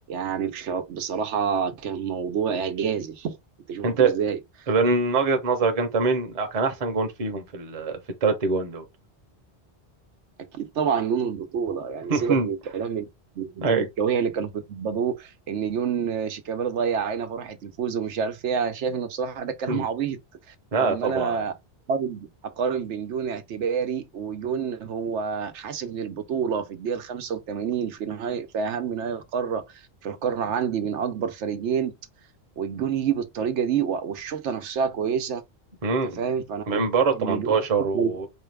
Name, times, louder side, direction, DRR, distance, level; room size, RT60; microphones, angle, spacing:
voice 1, 0.1-3.4 3.7-4.4 10.5-13.1 13.4-20.2 20.5-20.6 20.8-21.5 21.9-22.3 22.6-31.9 32.6-35.4 36.0-36.7 37.1-37.5 37.9-38.1, right 7 dB, 85° right, 1.0 m, -28 dB
voice 2, 3.8-4.1 4.7-8.8 12.1-12.5 13.6-13.8 19.7-19.8 20.7-21.4 35.8-36.2 36.7-38.3, right 4 dB, 35° right, 0.8 m, -24 dB
4.3 x 2.3 x 3.3 m
omnidirectional pair, 1.2 m